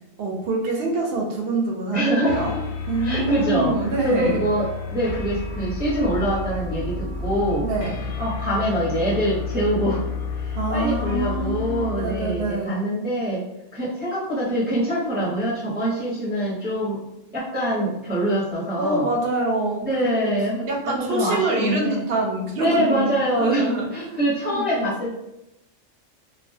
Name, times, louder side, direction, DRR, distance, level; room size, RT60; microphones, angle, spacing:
voice 1, 0.2-2.6 2.9-4.4 7.6-8.1 10.5-12.8 15.8-16.1 18.8-20.3 20.7-24.9, right 2 dB, 60° right, 0 dB, 0.6 m, -26 dB
voice 2, 1.9-2.4 3.0-3.7 4.0-7.6 8.2-10.0 10.3-13.4 13.7-17.0 17.3-19.1 19.8-20.6 21.1-22.0 22.6-25.2, equal, 10° right, -8 dB, 0.5 m, -24 dB
sound 1, 2.3-12.6, left 4 dB, 90° left, 1.0 m, -31 dB
2.2 x 2.1 x 2.6 m, 0.90 s
omnidirectional pair, 1.3 m